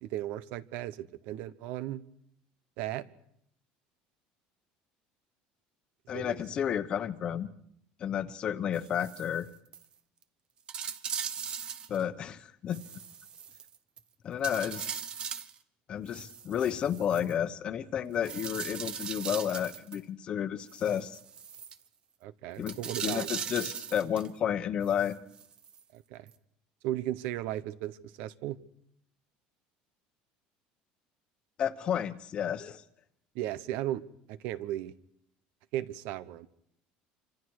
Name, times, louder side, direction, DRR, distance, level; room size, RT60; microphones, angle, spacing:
voice 1, 0.0-2.0 2.8-3.1 6.1-6.4 22.2-23.3 25.9-26.3 26.8-28.6 33.3-34.0 34.3-34.9 35.7-36.5, right 13 dB, 65° right, 1.1 m, -36 dB
voice 2, 6.1-7.5 8.0-9.5 11.9-12.8 14.2-14.9 15.9-21.2 22.6-22.8 23.0-25.2 31.6-32.8, left 9 dB, 35° left, 1.1 m, -31 dB
sound 1, 8.7-9.4 9.7-9.9 10.2-10.3 10.7-12.0 12.7-14.0 14.4-15.6 16.1-17.3 18.2-20.0 20.7-21.8 22.6-24.3 24.8-25.8 26.3-26.4, right 7 dB, 30° right, 1.1 m, -39 dB
27.0 x 26.0 x 4.8 m
cardioid pair, 155°, 3 cm